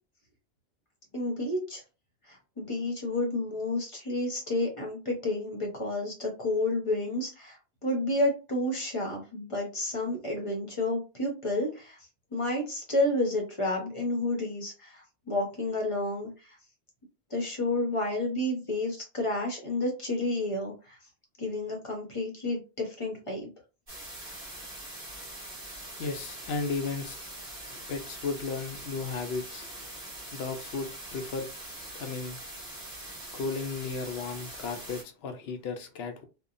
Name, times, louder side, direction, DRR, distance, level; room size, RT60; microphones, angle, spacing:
voice 1, 1.1-1.8 2.3-12.0 12.3-16.6 17.3-21.0 21.4-23.5, left 1 dB, 30° left, 0.8 m, -30 dB
sound 1, 23.9-35.0, right 1 dB, 35° right, 1.3 m, -43 dB
voice 2, 26.0-27.2 27.7-30.0 30.3-31.5 32.0-32.4 33.3-36.2, left 4 dB, 70° left, 0.8 m, -35 dB
2.8 x 2.3 x 2.5 m
omnidirectional pair, 1.1 m